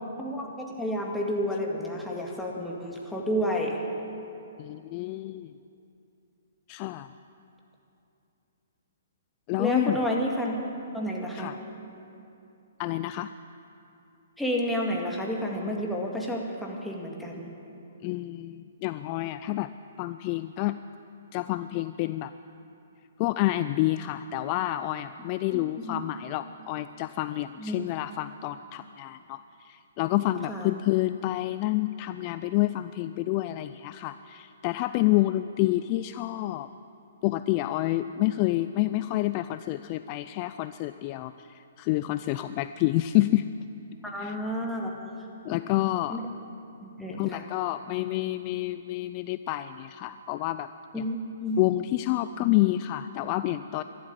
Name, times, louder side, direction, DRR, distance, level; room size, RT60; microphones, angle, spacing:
voice 1, 0.2-3.8 9.6-10.6 10.9-11.5 14.4-17.5 25.5-26.0 27.6-27.8 30.5-30.7 44.0-45.0 46.1-46.2 46.8-47.4 50.9-51.6, equal, 5° left, -2 dB, 2.0 m, -30 dB
voice 2, 4.6-5.5 6.7-7.1 9.5-10.0 11.3-11.6 12.8-13.3 18.0-19.7 20.0-20.8 21.3-22.3 23.2-36.7 37.2-43.5 44.2-44.4 45.4-46.2 47.2-50.7 51.0-51.1 51.6-53.8, left 16 dB, 35° left, 12 dB, 0.3 m, -28 dB
13.0 x 12.0 x 8.7 m, 2.7 s
hypercardioid pair, 135°, 0 cm